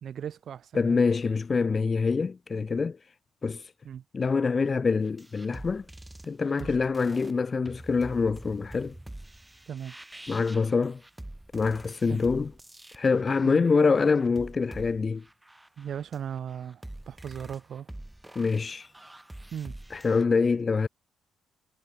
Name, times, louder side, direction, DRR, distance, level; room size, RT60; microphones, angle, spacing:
voice 1, 0.0-1.0 3.8-4.0 6.6-6.8 9.7-10.0 12.1-12.2 13.4-13.6 15.8-17.9 19.5-19.8, right 9 dB, 60° right, 0.9 m, -37 dB
voice 2, 0.7-3.0 3.4-3.7 4.1-5.8 6.3-8.9 10.3-11.0 11.5-12.5 12.9-15.2 18.4-18.9 19.9-20.9, left 4 dB, 35° left, 0.5 m, -25 dB
sound 1, 5.0-20.2, right 1 dB, 10° right, 1.9 m, -46 dB
cardioid pair, 90°, 0 cm